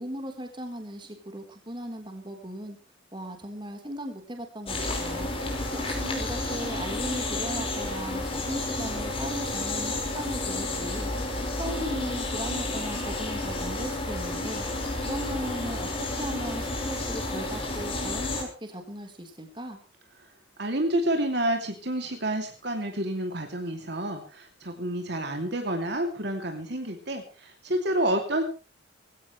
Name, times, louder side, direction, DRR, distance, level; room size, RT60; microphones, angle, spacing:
voice 1, 0.0-2.8 3.1-5.3 5.7-11.1 11.6-14.6 15.0-19.8, right 1 dB, 25° right, 4 dB, 3.9 m, -37 dB
sound 1, 4.7-18.4, left 2 dB, 30° left, 5.1 m, -31 dB
voice 2, 20.6-28.4, right 1 dB, 55° right, 4 dB, 2.8 m, -29 dB
20.0 x 16.5 x 3.3 m, 0.34 s
head